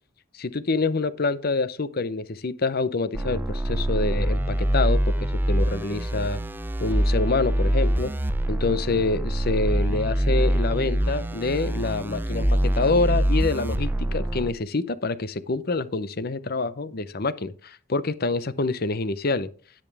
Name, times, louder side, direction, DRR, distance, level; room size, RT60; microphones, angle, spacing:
voice 1, 0.3-6.4 6.8-8.1 8.5-19.5, left 3 dB, 50° left, 0.8 m, -26 dB
sound 1, 3.1-14.5, right 1 dB, 10° right, 0.6 m, -24 dB
10.5 x 10.0 x 3.5 m
head